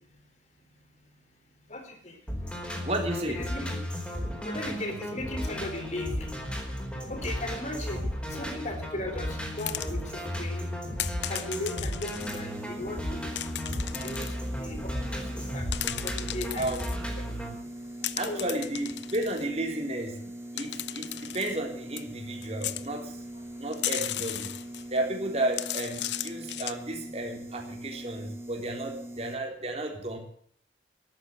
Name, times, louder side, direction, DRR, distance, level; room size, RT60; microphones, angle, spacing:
voice 1, 1.7-2.2 3.3-3.8 4.4-6.4 7.1-8.0 8.3-10.7 11.2-13.4 14.0-15.2 15.5-15.7 16.0-17.3 18.2-18.6 25.9-26.0, left 1 dB, 40° left, 5 dB, 3.9 m, -37 dB
sound 1, 2.3-17.5, equal, 5° left, 4.4 m, -34 dB
voice 2, 2.8-3.4 13.8-14.1 16.6-16.8 18.2-24.5 24.9-30.2, right 1 dB, 35° right, 2 dB, 3.7 m, -33 dB
sound 2, 9.6-10.3 11.0-12.4 13.4-14.3 15.5-17.0 18.0-19.5 20.6-21.5 22.0-22.1 22.4-22.9 23.7-25.0 25.4-26.7, left 13 dB, 75° left, 0.8 m, -35 dB
sound 3, 12.2-29.4, right 1 dB, 15° right, 1.8 m, -42 dB
13.5 x 11.5 x 7.9 m, 0.64 s
head